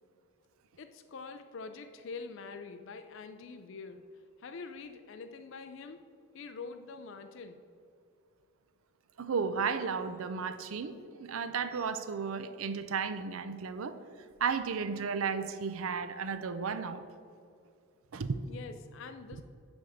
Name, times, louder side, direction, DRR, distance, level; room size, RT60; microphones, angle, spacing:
voice 1, 0.8-6.0 6.3-7.6 18.5-19.4, left 4 dB, 60° left, 7 dB, 0.4 m, -45 dB
voice 2, 9.2-14.0 14.4-17.0 18.1-18.4, right 5 dB, 70° right, 11 dB, 0.5 m, -34 dB
10.0 x 3.5 x 6.9 m, 2.4 s
head